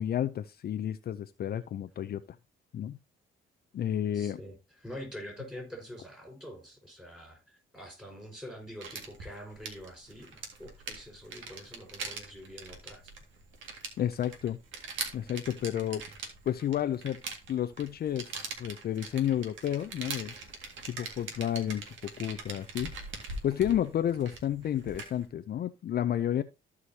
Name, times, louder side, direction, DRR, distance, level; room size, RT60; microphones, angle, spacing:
voice 1, 0.0-2.2 2.7-3.0 3.7-4.4 14.0-14.6 15.1-16.0 16.5-17.2 17.5-20.3 20.9-22.9 23.4-26.4, left 10 dB, 50° left, 0.5 m, -31 dB
voice 2, 4.1-7.4 7.7-13.1, equal, 5° right, 4.9 m, -45 dB
sound 1, 8.8-25.2, right 4 dB, 75° right, 2.1 m, -42 dB
14.5 x 4.9 x 2.8 m
cardioid pair, 90°, 20 cm